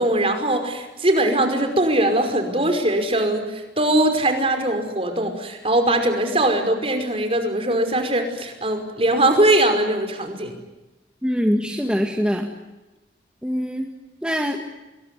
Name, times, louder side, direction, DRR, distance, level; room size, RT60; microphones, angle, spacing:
voice 1, 0.0-10.5, right 1 dB, 30° right, 6 dB, 5.4 m, -21 dB
voice 2, 11.2-12.5 13.4-13.9 14.2-14.6, equal, 5° right, 2 dB, 2.0 m, -23 dB
27.0 x 22.5 x 9.5 m, 1.1 s
head